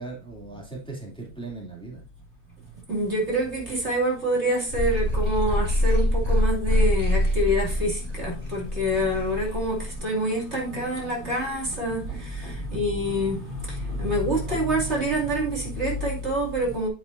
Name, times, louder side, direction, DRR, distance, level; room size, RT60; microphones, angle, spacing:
voice 1, 0.0-2.0 12.6-12.9, right 3 dB, 5° left, 2.6 m, -38 dB
voice 2, 2.9-16.9, equal, 45° right, 3.0 m, -26 dB
sound 1, 4.7-10.0, left 1 dB, 25° right, 4.1 m, -25 dB
9.9 x 7.2 x 2.6 m
omnidirectional pair, 1.6 m